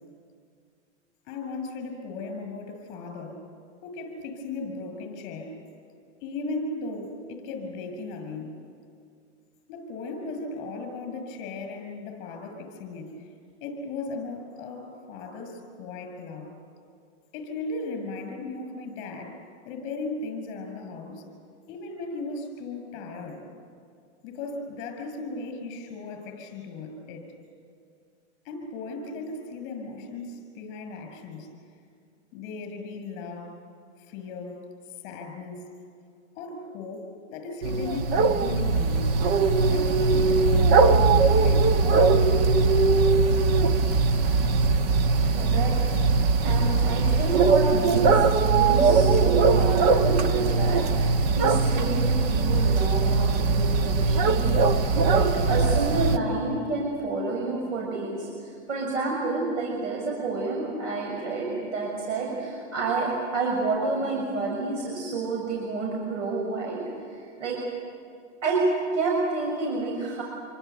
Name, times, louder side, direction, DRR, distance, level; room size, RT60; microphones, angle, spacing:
voice 1, 1.2-3.5 3.8-5.6 6.2-8.6 9.7-13.3 13.6-16.5 17.3-21.2 21.7-23.6 24.2-27.2 28.4-31.5 32.3-33.6 34.1-35.6 36.3-39.2 39.7-41.8, left 3 dB, 35° left, 5 dB, 6.5 m, -37 dB
sound 1, 37.6-56.2, right 4 dB, 35° right, 1.2 m, -21 dB
voice 2, 45.3-45.7 46.1-66.8 67.1-67.6 68.4-68.7 68.9-70.2, right 3 dB, 85° right, -2 dB, 6.6 m, -29 dB
27.0 x 24.0 x 8.3 m, 2.3 s
supercardioid pair, 160°, 36 cm